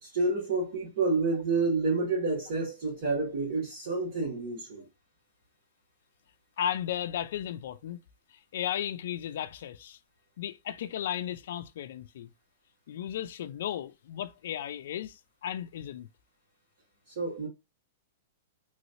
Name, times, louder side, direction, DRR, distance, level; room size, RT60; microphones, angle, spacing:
voice 1, 0.0-4.9 17.1-17.5, right 3 dB, 50° right, 1.8 m, -29 dB
voice 2, 6.6-8.0 8.3-10.0 10.4-12.3 12.9-16.1, left 10 dB, 65° left, 0.3 m, -35 dB
3.1 x 3.1 x 2.6 m
supercardioid pair, 165°, 0 cm